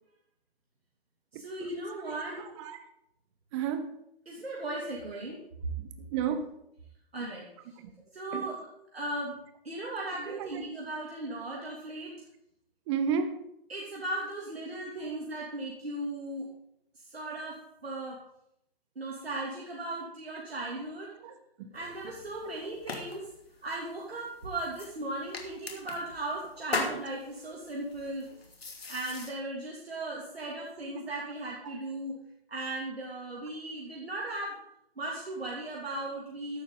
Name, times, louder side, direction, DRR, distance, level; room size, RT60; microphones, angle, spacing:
voice 1, 1.3-2.5 4.3-5.4 6.0-6.1 7.1-7.5 8.1-8.6 8.9-9.4 9.6-12.1 13.7-16.5 16.9-17.6 17.8-18.2 19.0-21.1 21.7-23.3 23.6-28.2 28.9-32.2 32.5-34.6 35.0-36.6, right 2 dB, 80° right, 2.9 m, -37 dB
voice 2, 2.0-2.8 3.5-3.9 5.8-6.5 7.8-7.9 8.3-8.5 10.3-10.5 12.9-13.4 15.0-15.2 21.2-21.7 31.6-31.7, right 7 dB, 30° right, 1.2 m, -33 dB
sound 1, 21.7-29.3, left 3 dB, 80° left, 2.7 m, -40 dB
14.5 x 11.5 x 4.0 m
figure-of-eight pair, 130°, 30 cm